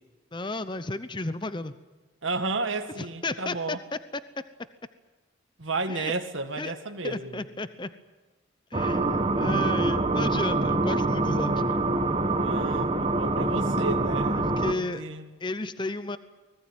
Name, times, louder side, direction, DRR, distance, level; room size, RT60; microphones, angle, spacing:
voice 1, 0.3-1.7 3.0-3.8 4.1-4.2 5.9-6.1 6.6-6.7 7.0-7.9 8.7-11.8 14.4-15.0 15.4-16.2, left 2 dB, 25° left, 12 dB, 0.8 m, -33 dB
voice 2, 2.2-3.8 5.6-7.4 12.4-15.3, right 3 dB, 80° right, 6 dB, 1.9 m, -32 dB
sound 1, 8.7-14.7, right 2 dB, 30° right, 1.3 m, -25 dB
24.0 x 20.0 x 9.1 m, 1.3 s
head